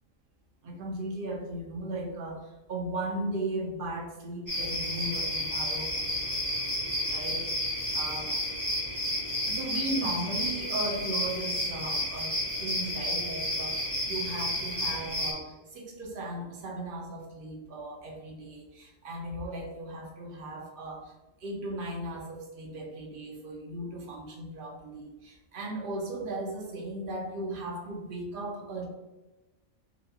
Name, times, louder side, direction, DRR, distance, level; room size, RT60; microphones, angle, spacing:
voice 1, 0.6-6.1 7.1-7.5 7.9-8.4 9.4-28.9, right 2 dB, 55° right, 1 dB, 0.6 m, -37 dB
sound 1, 4.5-15.3, left 1 dB, 15° right, 1.0 m, -31 dB
4.0 x 2.3 x 2.7 m, 1.1 s
omnidirectional pair, 1.5 m